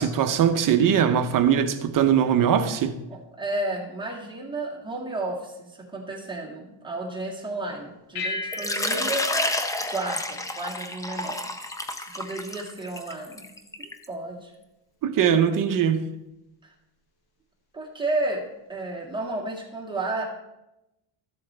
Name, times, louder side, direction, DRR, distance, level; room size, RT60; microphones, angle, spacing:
voice 1, 0.0-3.0 15.0-16.1, right 8 dB, 40° right, 0.8 m, -21 dB
voice 2, 3.1-11.5 11.9-13.5 13.8-14.5 16.6-16.7 17.7-20.2, right 2 dB, 10° right, 1.9 m, -32 dB
sound 1, 8.1-10.9, left 2 dB, 50° left, 1.2 m, -37 dB
Water / Liquid, 8.5-14.1, left 1 dB, 10° left, 0.3 m, -30 dB
14.0 x 7.6 x 3.4 m
cardioid pair, 150°, 49 cm